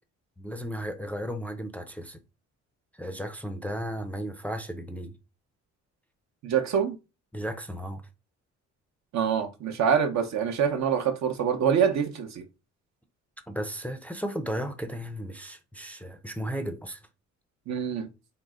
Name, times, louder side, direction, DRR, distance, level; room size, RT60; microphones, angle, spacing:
voice 1, 0.4-2.2 2.9-5.2 7.3-8.0 13.5-17.0, equal, 5° left, 0.4 m, -35 dB
voice 2, 6.4-7.0 9.1-12.4 17.7-18.1, right 7 dB, 65° right, 0.8 m, -25 dB
3.8 x 2.1 x 3.6 m
cardioid pair, 90°, 30 cm